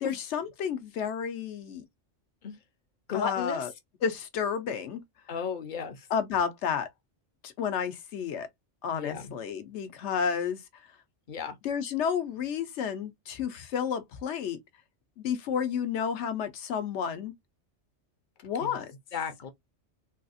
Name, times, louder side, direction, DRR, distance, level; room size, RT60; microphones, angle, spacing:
voice 1, 0.0-1.8 3.1-3.7 4.0-5.0 6.1-6.9 7.4-8.5 8.8-10.6 11.6-14.6 15.2-17.3 18.4-18.9, left 7 dB, 75° left, 0.9 m, -31 dB
voice 2, 3.1-3.7 5.3-6.0 8.9-9.3 11.3-11.5 18.6-18.8 19.1-19.5, left 7 dB, 50° left, 0.7 m, -34 dB
3.4 x 2.3 x 2.5 m
omnidirectional pair, 1.2 m